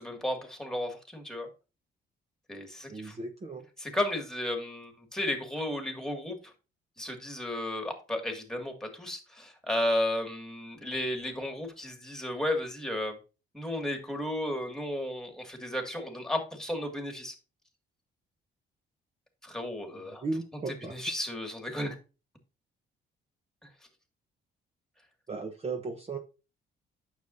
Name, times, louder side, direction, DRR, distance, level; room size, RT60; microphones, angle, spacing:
voice 1, 0.0-1.5 2.5-3.2 3.8-6.4 7.0-13.1 13.5-17.3 19.4-20.2 20.7-22.0, left 1 dB, 5° left, 4 dB, 2.1 m, -33 dB
voice 2, 2.9-3.6 20.2-20.9 25.3-26.2, right 3 dB, 30° right, 4 dB, 1.0 m, -35 dB
9.1 x 6.6 x 2.7 m, 0.31 s
cardioid pair, 90°, 20 cm